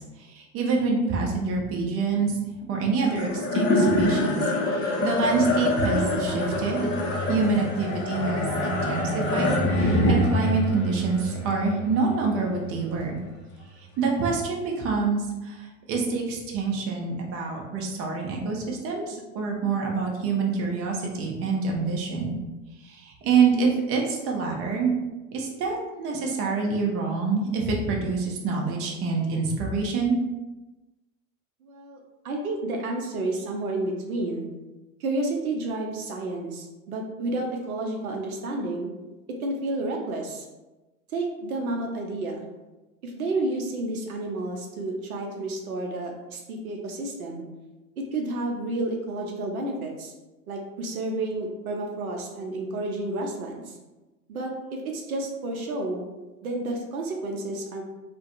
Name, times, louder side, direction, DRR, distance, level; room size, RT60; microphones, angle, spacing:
voice 1, 0.3-2.4 2.7-6.9 7.3-13.2 14.0-15.6 15.9-22.3 22.8-24.9 25.3-30.2, right 4 dB, 35° right, 0 dB, 0.6 m, -26 dB
sound 1, 3.0-13.5, left 1 dB, 25° left, 0.5 m, -25 dB
voice 2, 31.6-32.0 32.2-34.5 35.0-38.9 39.3-40.5 41.1-42.4 43.0-47.4 48.0-50.1 50.5-53.7 54.3-56.1 56.4-57.8, right 2 dB, 80° right, 1 dB, 0.6 m, -30 dB
2.3 x 2.2 x 2.6 m, 1.1 s
hypercardioid pair, 85°, 43 cm